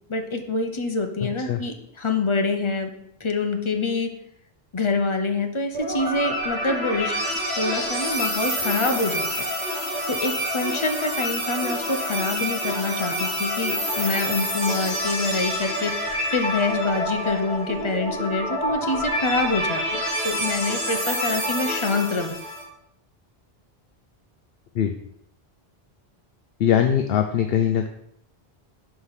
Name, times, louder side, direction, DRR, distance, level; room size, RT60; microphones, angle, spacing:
voice 1, 0.1-2.9 3.2-4.1 4.7-7.1 7.6-9.3 10.1-15.9 16.3-22.4, left 3 dB, 30° left, 5 dB, 0.7 m, -26 dB
sound 1, 5.7-22.6, equal, 85° right, 2.8 m, -27 dB
voice 2, 26.6-27.9, left 9 dB, 70° left, 6 dB, 0.8 m, -21 dB
5.7 x 4.9 x 5.6 m, 0.75 s
omnidirectional pair, 1.1 m